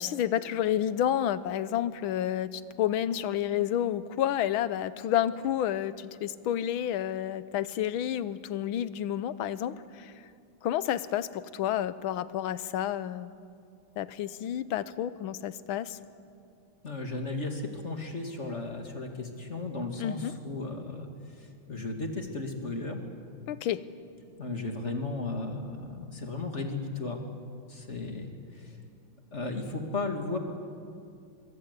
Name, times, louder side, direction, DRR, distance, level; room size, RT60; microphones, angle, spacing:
voice 1, 0.0-10.1 10.6-13.3 14.0-16.0 20.0-20.3 23.5-23.8, left 11 dB, 80° left, 15 dB, 1.6 m, -30 dB
voice 2, 16.8-21.1 21.7-23.0 24.4-27.2 27.7-28.3 28.6-28.7 29.3-30.4, left 3 dB, 35° left, 4 dB, 2.3 m, -35 dB
24.5 x 22.5 x 8.2 m, 2.4 s
omnidirectional pair, 2.3 m